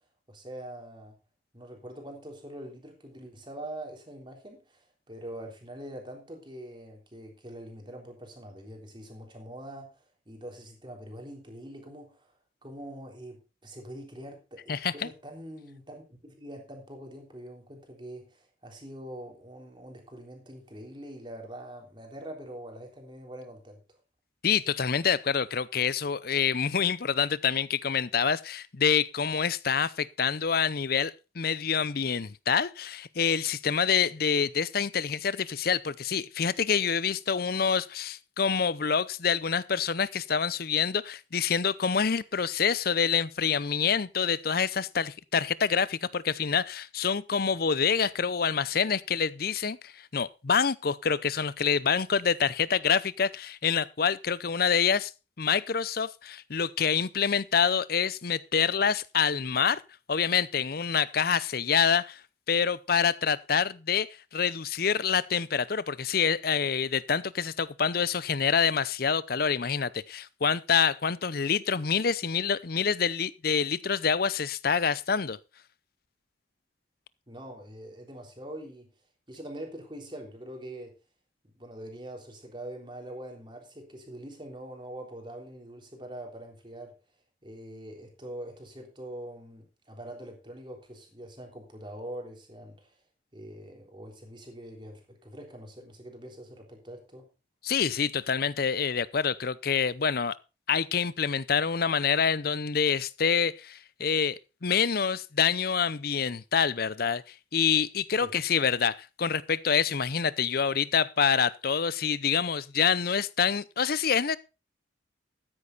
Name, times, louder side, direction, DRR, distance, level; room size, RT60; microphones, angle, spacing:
voice 1, 0.3-1.2 1.5-24.0 77.3-78.9 79.3-80.9 81.4-86.9 87.4-93.0 93.3-97.3 108.2-108.3, right 1 dB, 25° right, 3.5 m, -44 dB
voice 2, 14.7-15.1 24.4-55.1 55.4-59.8 60.1-62.2 62.5-75.4 97.6-100.3 100.7-114.4, left 6 dB, 55° left, 0.6 m, -27 dB
13.5 x 9.9 x 4.0 m
head